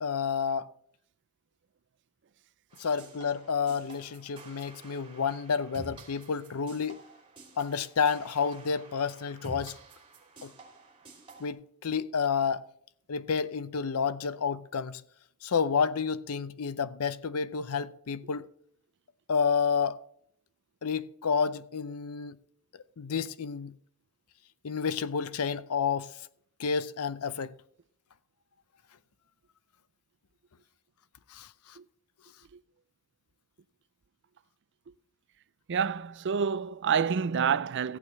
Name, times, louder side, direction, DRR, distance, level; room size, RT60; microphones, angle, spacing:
voice 1, 0.0-0.7 2.8-7.0 7.6-9.8 10.4-10.5 11.4-12.7 13.1-15.0 15.4-18.5 19.3-20.0 20.8-22.4 23.0-23.7 24.6-26.1 26.6-27.5 31.3-31.5, left 6 dB, 85° left, 0.6 m, -30 dB
sound 1, 2.7-11.5, right 2 dB, 25° right, 3.1 m, -50 dB
voice 2, 35.7-38.0, right 6 dB, 55° right, 0.5 m, -28 dB
14.5 x 8.8 x 3.2 m
head